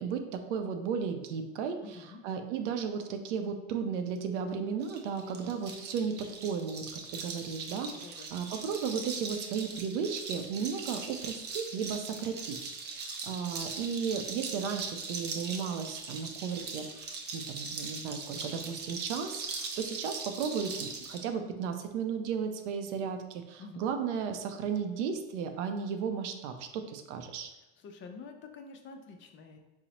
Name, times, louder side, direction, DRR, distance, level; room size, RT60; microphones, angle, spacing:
voice 1, 0.0-12.6 12.8-17.1 17.3-27.5, right 6 dB, 90° right, 6 dB, 0.5 m, -35 dB
voice 2, 1.8-2.2 8.0-8.3 23.6-23.9 27.8-29.6, left 4 dB, 35° left, 5 dB, 0.4 m, -48 dB
sound 1, 4.8-21.2, right 4 dB, 30° right, 0.5 m, -40 dB
3.9 x 2.0 x 2.8 m, 1.0 s
supercardioid pair, 100°, 34 cm